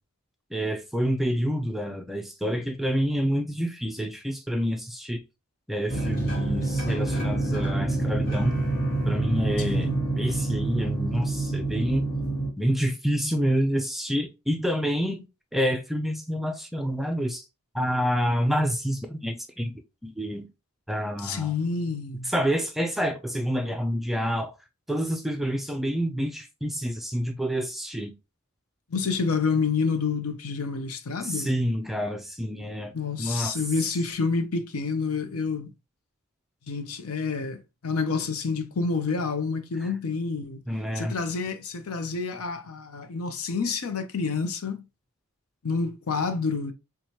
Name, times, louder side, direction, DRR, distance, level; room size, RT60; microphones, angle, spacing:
voice 1, 0.5-5.2 5.7-8.6 9.0-9.9 10.2-12.1 12.6-15.3 15.5-17.4 17.7-19.7 20.0-20.5 20.9-21.5 22.3-24.5 24.9-28.1 31.2-32.9 33.2-33.5 40.7-41.1, equal, ahead, 0.3 m, -28 dB
sound 1, 5.9-12.5, right 2 dB, 40° left, 1.1 m, -27 dB
voice 2, 9.6-10.0 21.2-22.3 28.9-31.5 32.9-35.7 36.7-40.6 41.0-44.8 45.6-46.7, left 4 dB, 80° left, 0.6 m, -28 dB
4.5 x 2.3 x 2.8 m
head